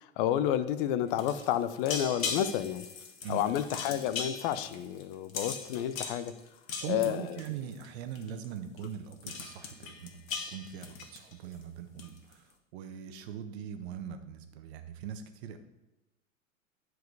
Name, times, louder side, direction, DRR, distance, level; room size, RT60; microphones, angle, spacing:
voice 1, 0.2-2.8 3.3-6.3 6.9-7.4, left 11 dB, 40° left, 12 dB, 0.7 m, -30 dB
sound 1, 1.1-7.9 8.1-8.5 8.8-8.9 9.1-11.6 12.0-12.3, left 5 dB, 75° left, 1.7 m, -39 dB
voice 2, 6.7-10.2 10.5-12.4 12.7-15.6, right 8 dB, 50° right, 8 dB, 1.1 m, -41 dB
10.5 x 4.8 x 4.7 m, 1.0 s
hypercardioid pair, 115°, 41 cm